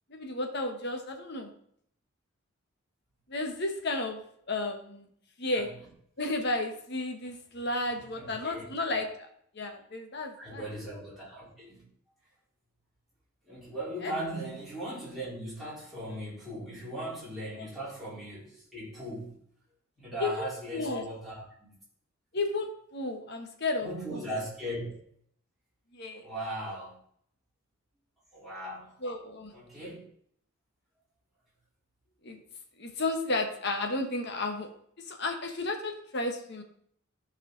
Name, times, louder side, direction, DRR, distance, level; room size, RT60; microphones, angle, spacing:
voice 1, 0.1-1.5 3.3-4.2 4.5-5.1 5.4-5.7 6.2-9.3 9.5-10.6 14.0-14.1 17.6-17.7 20.2-21.1 22.3-24.2 25.9-26.2 29.0-29.5 32.2-32.4 32.8-34.7 35.0-36.6, left 2 dB, 50° left, 4 dB, 1.3 m, -33 dB
voice 2, 8.2-8.6 10.4-11.8 13.5-19.3 20.0-21.7 23.8-24.9 26.2-27.0 28.3-28.9 29.5-30.0, right 1 dB, ahead, -9 dB, 3.8 m, -38 dB
14.0 x 4.9 x 3.9 m, 0.66 s
head